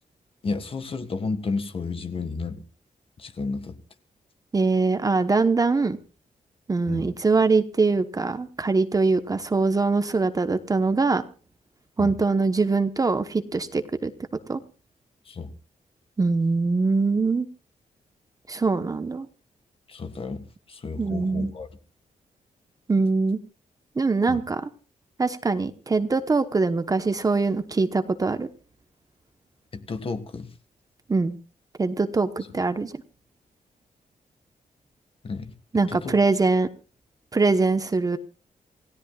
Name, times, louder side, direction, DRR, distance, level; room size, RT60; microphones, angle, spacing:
voice 1, 0.4-2.6 3.2-3.8 6.9-7.1 12.0-12.2 15.3-15.5 19.9-21.7 24.3-24.4 29.7-30.5 32.4-32.5 35.2-35.5 35.9-36.2, left 4 dB, 40° left, 1.6 m, -32 dB
voice 2, 4.5-6.0 6.7-11.2 12.0-14.1 14.5-14.6 16.2-17.5 18.5-19.3 21.0-21.5 22.9-23.4 24.0-24.7 25.2-28.5 31.1-31.4 31.8-33.0 35.7-36.7 37.3-38.2, right 3 dB, 25° right, 1.0 m, -23 dB
28.5 x 16.5 x 2.4 m
wide cardioid pair, 155°, 14 cm